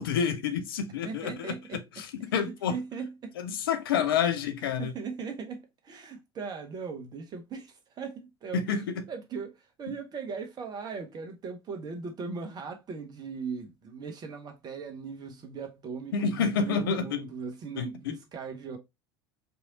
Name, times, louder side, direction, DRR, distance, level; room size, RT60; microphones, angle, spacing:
voice 1, 0.0-2.8 3.4-4.9 8.5-9.0 16.1-17.2 17.8-18.2, left 7 dB, 65° left, 0.7 m, -29 dB
voice 2, 1.0-1.8 2.2-3.3 4.2-4.3 4.8-8.8 9.1-18.8, right 5 dB, 30° right, 1.3 m, -39 dB
4.5 x 3.3 x 2.7 m
figure-of-eight pair, 70°, 13 cm